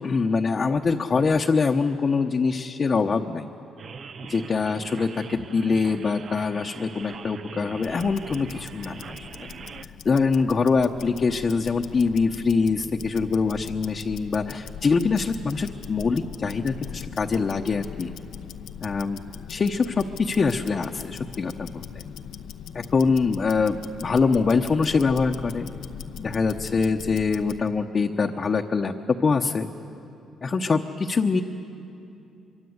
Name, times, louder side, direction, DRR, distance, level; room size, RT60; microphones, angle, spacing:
voice 1, 0.0-3.5 4.3-9.2 10.0-18.1 18.8-19.2 19.5-21.8 22.7-25.7 26.2-29.7 30.4-31.4, left 4 dB, 40° left, 2 dB, 1.0 m, -24 dB
sound 1, 3.8-9.9, right 6 dB, 50° right, 0.7 m, -41 dB
Tick-tock, 7.8-27.7, left 8 dB, 80° left, 0.8 m, -40 dB
25.0 x 23.5 x 8.0 m, 2.8 s
cardioid pair, 90°, 0 cm